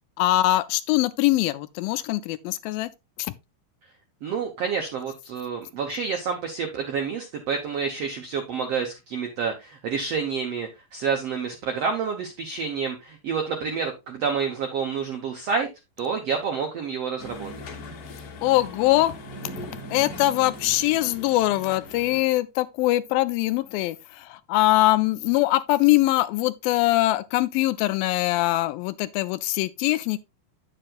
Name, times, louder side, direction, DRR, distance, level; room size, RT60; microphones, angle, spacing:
voice 1, 0.2-2.9 3.2-3.3 18.4-19.1 19.9-30.2, left 17 dB, 80° left, 2.2 m, -22 dB
voice 2, 4.2-15.7 16.0-17.5, right 6 dB, 75° right, 1.4 m, -28 dB
sound 1, 17.2-22.2, left 1 dB, 50° left, 2.2 m, -40 dB
9.0 x 7.5 x 2.4 m
omnidirectional pair, 4.3 m